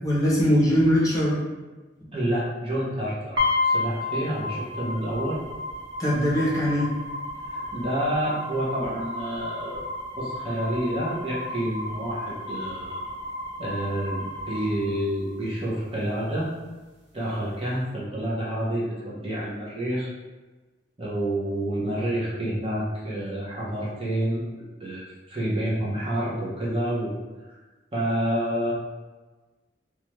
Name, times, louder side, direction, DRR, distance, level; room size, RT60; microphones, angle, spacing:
voice 1, 0.0-1.4 6.0-6.9, equal, 20° left, -7 dB, 0.7 m, -21 dB
voice 2, 2.1-5.4 7.5-9.8 10.2-13.0 13.6-16.5 17.1-20.1 21.0-24.4 24.8-25.0 25.3-27.1 27.9-28.7, right 1 dB, 30° right, -7 dB, 0.7 m, -28 dB
sound 1, 3.4-15.4, left 2 dB, 70° right, 0.8 m, -32 dB
3.1 x 2.2 x 3.0 m, 1.2 s
head